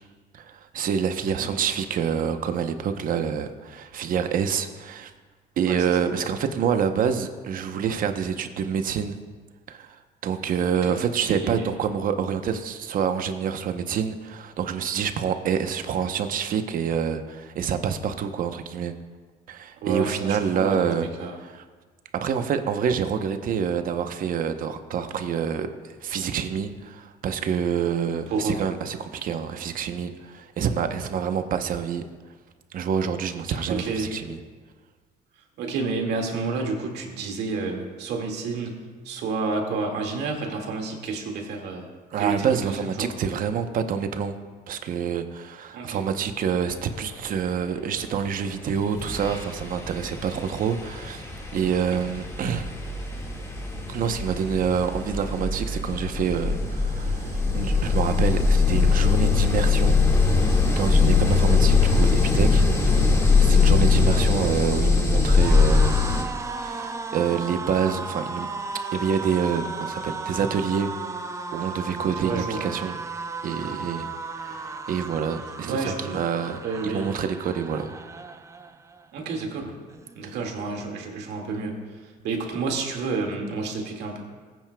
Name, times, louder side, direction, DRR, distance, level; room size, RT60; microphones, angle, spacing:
voice 1, 0.3-5.1 5.6-9.2 9.7-18.9 19.5-21.1 21.3-21.6 22.1-32.0 32.7-34.4 42.1-44.3 44.7-52.7 53.9-66.0 66.3-68.5 68.9-70.9 71.5-73.0 73.4-74.1 74.4-77.9 80.2-80.3, right 7 dB, 55° right, 8 dB, 0.8 m, -27 dB
voice 2, 5.7-6.0 10.8-10.9 11.3-11.7 19.8-20.9 21.2-21.4 28.3-28.6 33.7-34.1 35.6-38.8 39.0-41.9 42.2-43.1 45.7-46.0 63.9-64.0 72.0-72.6 74.5-74.6 75.7-76.2 76.6-77.1 79.1-79.7 80.2-81.8 82.2-84.2, right 4 dB, 75° right, 1 dB, 2.0 m, -30 dB
sound 1, 48.4-48.6 49.0-66.2, left 4 dB, 15° left, 1.8 m, -21 dB
sound 2, 64.0-79.1 79.4-79.6 79.9-80.7, right 4 dB, 15° right, 0.5 m, -35 dB
20.0 x 9.2 x 2.3 m, 1.5 s
cardioid pair, 110°, 17 cm